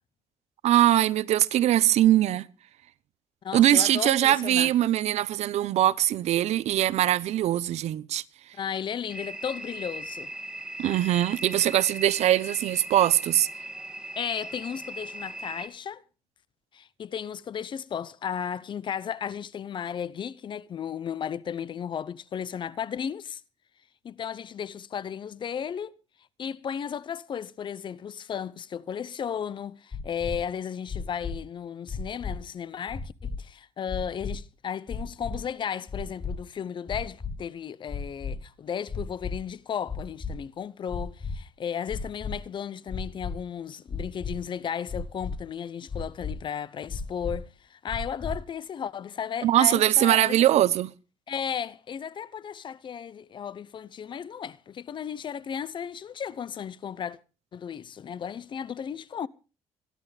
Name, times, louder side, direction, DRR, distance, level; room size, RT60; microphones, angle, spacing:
voice 1, 0.6-2.5 3.5-8.2 10.8-13.5 49.4-50.9, right 13 dB, 70° right, 0.8 m, -22 dB
voice 2, 3.4-4.7 8.5-10.3 14.2-16.0 16.7-23.4 24.0-25.9 26.4-50.5 51.3-57.2 57.5-59.3, left 8 dB, 45° left, 0.7 m, -34 dB
sound 1, 9.1-15.7, right 1 dB, 5° right, 2.3 m, -39 dB
sound 2, 29.9-30.3 30.9-31.3 31.9-32.3 32.9-33.3 33.9-34.3 34.9-35.3 35.9-36.3 36.9-37.3 37.9-38.3 38.9-39.3 39.9-40.3 40.9-41.3 41.9-42.3 42.9-43.3 43.9-44.3 44.9-45.3 45.9-46.3 46.9-47.3 47.9-48.3, left 5 dB, 25° left, 5.5 m, -33 dB
26.0 x 11.0 x 3.3 m
cardioid pair, 120°, 12 cm